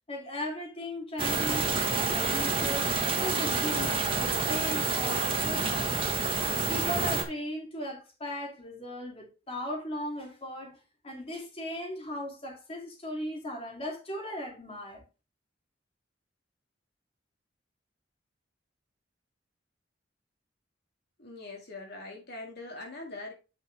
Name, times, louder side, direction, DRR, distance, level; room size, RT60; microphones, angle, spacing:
voice 1, 0.1-2.9 3.2-6.2 6.7-15.0, left 1 dB, 30° left, 2.8 m, -37 dB
sound 1, 1.2-7.2, right 4 dB, 30° right, 1.4 m, -28 dB
voice 2, 21.2-23.3, left 2 dB, 60° left, 2.0 m, -42 dB
9.2 x 5.5 x 3.4 m
head